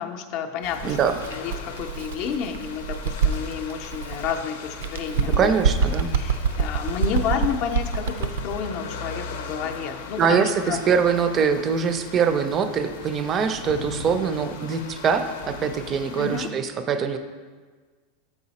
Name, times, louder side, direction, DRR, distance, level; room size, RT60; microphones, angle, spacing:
voice 1, 0.0-1.0 1.3-5.5 6.1-10.8 16.2-16.5, left 7 dB, 45° left, 6 dB, 0.5 m, -30 dB
sound 1, 0.6-16.5, left 5 dB, 85° left, 0.7 m, -39 dB
voice 2, 0.8-1.2 5.3-6.1 10.2-17.2, right 6 dB, 25° right, 9 dB, 0.4 m, -23 dB
Bird, 0.8-4.4 4.8-8.6, right 5 dB, 85° right, 0.4 m, -26 dB
6.9 x 4.8 x 4.1 m, 1.5 s
supercardioid pair, 165°, 0 cm